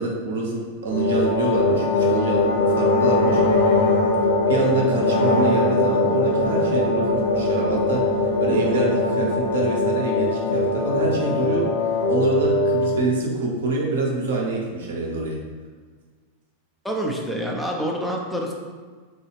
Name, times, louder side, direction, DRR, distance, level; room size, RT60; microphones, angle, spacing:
voice 1, 0.0-3.4 4.5-8.0 8.4-11.7 12.0-15.4, right 2 dB, 60° right, -1 dB, 0.6 m, -25 dB
sound 1, 0.9-13.1, left 2 dB, 60° left, 0.6 m, -21 dB
voice 2, 16.8-18.5, equal, ahead, -1 dB, 0.5 m, -27 dB
3.6 x 2.3 x 3.1 m, 1.5 s
figure-of-eight pair, 90°, 0 cm